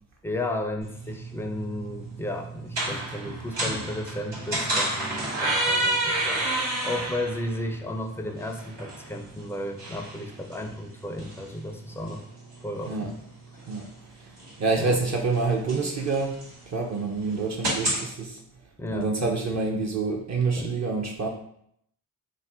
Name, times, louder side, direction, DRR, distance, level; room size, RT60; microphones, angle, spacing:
voice 1, 0.2-12.2 12.6-13.1 14.8-15.0 18.8-19.1 20.6-20.7, left 1 dB, 5° left, 4 dB, 0.4 m, -34 dB
sound 1, 0.8-18.0, right 1 dB, 80° right, 1.3 m, -32 dB
voice 2, 14.6-18.4 18.9-21.3, right 4 dB, 40° right, 1 dB, 0.6 m, -27 dB
2.6 x 2.0 x 3.5 m, 0.69 s
hypercardioid pair, 40°, 42 cm